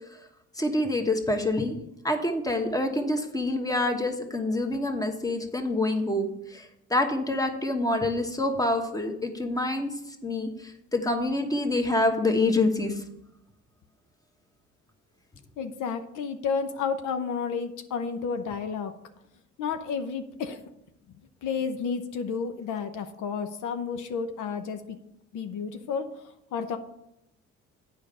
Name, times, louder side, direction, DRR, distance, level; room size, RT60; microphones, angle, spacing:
voice 1, 0.6-1.8 2.0-9.9 10.2-13.0, left 2 dB, 10° left, 5 dB, 1.3 m, -26 dB
voice 2, 15.6-18.9 19.6-20.6 21.4-25.0 25.3-26.2 26.5-26.8, left 6 dB, 80° left, 8 dB, 0.9 m, -31 dB
8.5 x 5.2 x 5.5 m, 0.82 s
cardioid pair, 90°, 30 cm